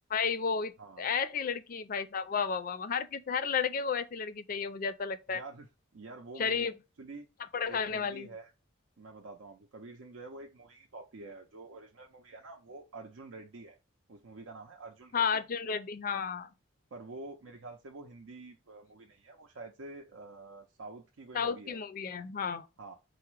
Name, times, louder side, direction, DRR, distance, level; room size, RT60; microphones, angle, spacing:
voice 1, 0.1-0.7 1.0-5.4 6.4-6.7 7.5-8.3 15.1-16.5 21.3-22.6, left 6 dB, 45° left, 0.4 m, -32 dB
voice 2, 0.8-1.1 5.3-5.7 5.9-6.7 7.0-7.3 7.7-8.5 9.0-13.8 14.1-15.4 16.9-21.8 22.8-23.0, right 3 dB, 80° right, 0.6 m, -48 dB
4.7 x 2.0 x 4.5 m
head